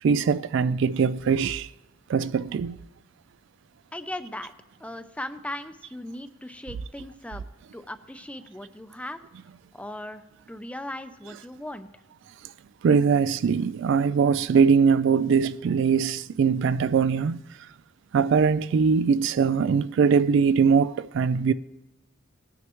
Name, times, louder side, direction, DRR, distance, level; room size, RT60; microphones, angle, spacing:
voice 1, 0.0-1.7 2.1-2.8 11.3-11.4 12.8-17.4 18.1-21.5, right 6 dB, 60° right, 0.3 m, -22 dB
voice 2, 3.9-4.5 4.8-7.4 7.7-9.2 9.7-11.9, left 1 dB, 5° left, 0.5 m, -38 dB
19.0 x 9.3 x 3.0 m
head